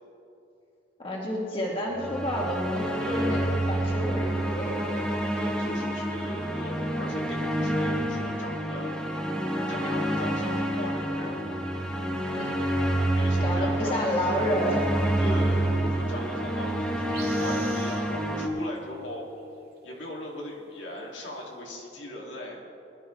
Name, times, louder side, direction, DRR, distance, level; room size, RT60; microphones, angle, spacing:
voice 1, 1.0-5.2 12.4-12.6 13.4-14.9, equal, 30° left, -3 dB, 2.1 m, -30 dB
sound 1, 1.9-18.5, right 1 dB, 5° left, 1.4 m, -28 dB
voice 2, 3.0-3.4 5.3-8.9 9.7-11.6 13.1-14.1 15.2-19.3 19.8-22.6, left 1 dB, 85° left, -3 dB, 2.4 m, -38 dB
sound 2, 16.7-16.8 17.0-18.5 18.8-19.0 19.4-19.5 19.8-19.9 21.0-21.1, right 6 dB, 55° right, 2.1 m, -43 dB
21.0 x 12.0 x 3.2 m, 2.8 s
head